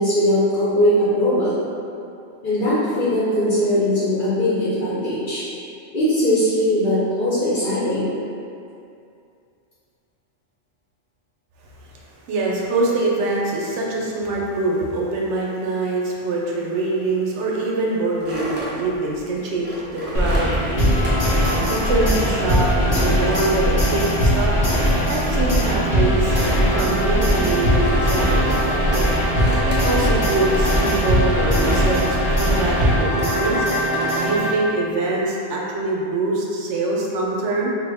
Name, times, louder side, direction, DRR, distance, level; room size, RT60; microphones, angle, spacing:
voice 1, 0.0-1.6 2.4-5.4 5.9-8.1, left 1 dB, 50° left, -11 dB, 0.9 m, -20 dB
voice 2, 11.9-21.1 21.7-24.1 24.3-24.5 25.1-29.1 29.7-33.7 34.2-37.7, right 2 dB, 75° right, -3 dB, 0.9 m, -24 dB
sound 1, 18.2-22.5 23.0-24.5 24.7-32.1 32.7-34.4, right 1 dB, 15° right, 0.4 m, -32 dB
sound 2, 20.1-33.0, equal, 80° left, 1.1 m, -22 dB
sound 3, 20.8-34.9, equal, 20° left, 0.7 m, -23 dB
3.3 x 2.1 x 3.4 m, 2.5 s
omnidirectional pair, 1.2 m